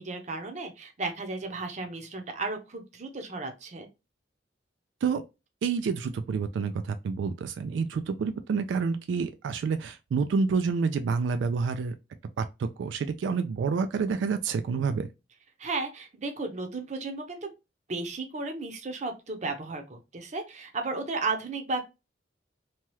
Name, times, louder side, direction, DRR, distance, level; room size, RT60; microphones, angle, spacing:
voice 1, 0.0-3.9 15.6-17.5 17.9-21.8, right 3 dB, 40° right, 0.6 m, -34 dB
voice 2, 5.6-11.9 12.4-15.1, right 5 dB, 85° right, 0.3 m, -28 dB
2.9 x 2.3 x 3.1 m
head